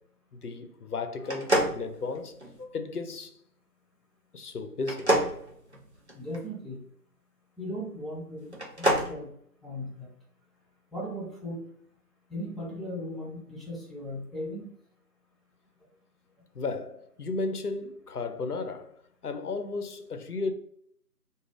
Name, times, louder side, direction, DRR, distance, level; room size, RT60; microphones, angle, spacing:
voice 1, 0.3-3.3 4.3-5.2 16.5-20.5, left 3 dB, 70° left, 0.6 m, -34 dB
sound 1, 1.2-2.6 4.8-6.4 8.5-9.1, right 1 dB, 45° right, 0.6 m, -27 dB
voice 2, 6.1-6.9 7.6-9.3 9.6-10.1 10.9-11.6 12.3-14.7, equal, ahead, 0.5 m, -37 dB
2.4 x 2.4 x 3.2 m
figure-of-eight pair, 170°, 47 cm